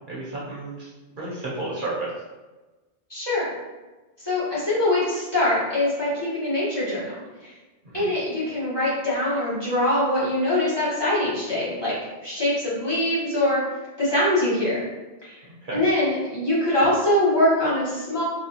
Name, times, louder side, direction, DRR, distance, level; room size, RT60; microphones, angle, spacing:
voice 1, 0.1-2.1 7.8-8.1 15.6-15.8, right 2 dB, 55° right, -6 dB, 0.9 m, -32 dB
voice 2, 3.1-3.5 4.2-7.1 7.4-7.5 7.9-12.0 12.2-13.6 14.0-14.9 15.2-15.4 15.7-18.2, left 1 dB, 25° left, -10 dB, 1.1 m, -23 dB
3.4 x 2.3 x 2.7 m, 1.2 s
omnidirectional pair, 1.1 m